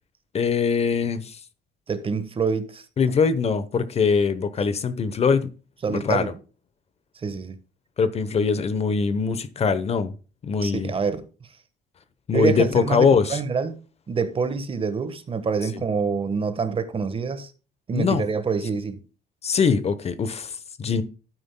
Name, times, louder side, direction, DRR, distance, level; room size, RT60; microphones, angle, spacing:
voice 1, 0.3-1.4 3.0-5.5 5.9-6.2 8.0-10.1 10.4-10.9 12.3-13.4 17.9-18.2 19.4-21.0, left 5 dB, 40° left, 0.9 m, -22 dB
voice 2, 1.9-2.9 5.8-6.3 7.1-7.6 10.6-11.3 12.3-13.8 14.1-17.5 17.9-19.0, right 5 dB, 30° right, 1.3 m, -26 dB
12.0 x 9.3 x 2.2 m
cardioid pair, 110°, 17 cm